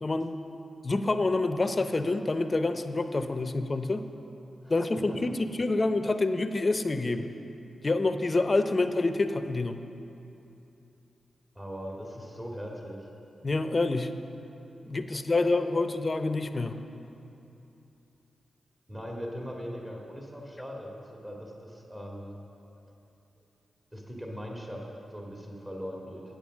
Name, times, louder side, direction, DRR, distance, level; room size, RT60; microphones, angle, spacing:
voice 1, 0.0-0.3 0.8-4.0 4.7-7.3 7.8-9.8 13.4-14.1 14.9-16.7, left 2 dB, 40° left, 9 dB, 0.7 m, -27 dB
voice 2, 4.6-5.2 11.6-13.1 15.1-15.2 18.9-22.4 23.9-26.2, equal, 25° right, -2 dB, 1.9 m, -40 dB
8.9 x 8.8 x 6.3 m, 2.9 s
cardioid pair, 45°, 0 cm